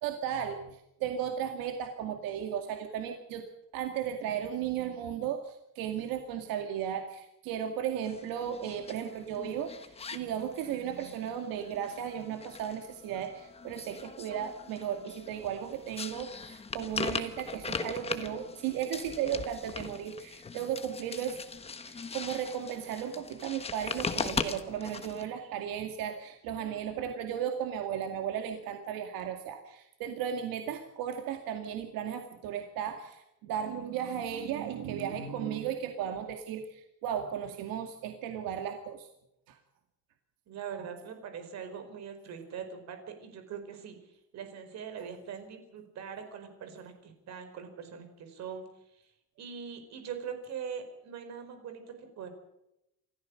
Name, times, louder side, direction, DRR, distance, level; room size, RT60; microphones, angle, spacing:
voice 1, 0.0-3.4 3.7-21.4 21.8-39.1 39.5-39.6, right 9 dB, 80° right, 5 dB, 2.2 m, -35 dB
sound 1, 8.0-25.3, left 5 dB, 15° left, 1.3 m, -40 dB
voice 2, 40.5-44.0 44.3-48.7 49.4-52.3, right 7 dB, 50° right, 8 dB, 4.8 m, -42 dB
28.5 x 14.5 x 6.5 m, 0.85 s
cardioid pair, 165°, 34 cm